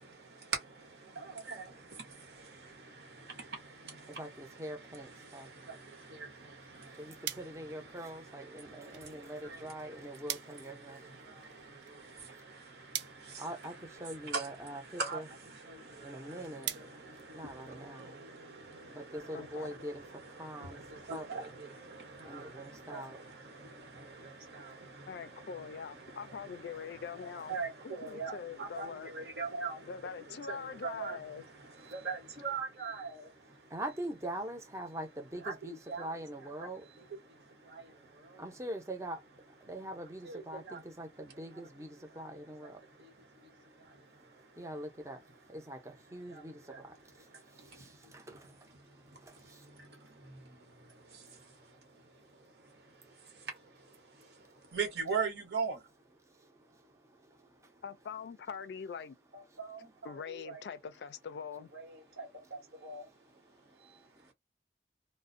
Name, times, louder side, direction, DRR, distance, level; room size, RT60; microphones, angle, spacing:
voice 1, 0.0-33.7 35.4-36.1 36.4-36.7 37.0-38.4 40.2-40.8 42.1-42.2 42.6-44.6 46.3-46.8 47.2-48.4 48.8-55.8 59.3-60.6 61.7-63.1 63.7-64.1, right 4 dB, 65° right, 1.0 m, -44 dB
voice 2, 4.2-5.5 7.0-11.0 13.4-13.7 14.0-15.3 16.0-16.7 17.3-18.1 18.9-20.0 20.4-20.8 21.1-21.5 22.3-23.2 33.7-36.8 38.4-39.2 39.7-42.7 44.6-45.2 45.5-45.8 46.1-46.9 48.3-48.4, right 1 dB, 15° right, 0.6 m, -43 dB
sound 1, 7.2-18.0, right 11 dB, 90° right, 0.4 m, -47 dB
voice 3, 19.3-19.7 25.1-27.6 27.8-29.1 29.8-31.4 57.8-59.2 60.0-61.7, left 6 dB, 70° left, 0.3 m, -43 dB
2.5 x 2.1 x 2.5 m
head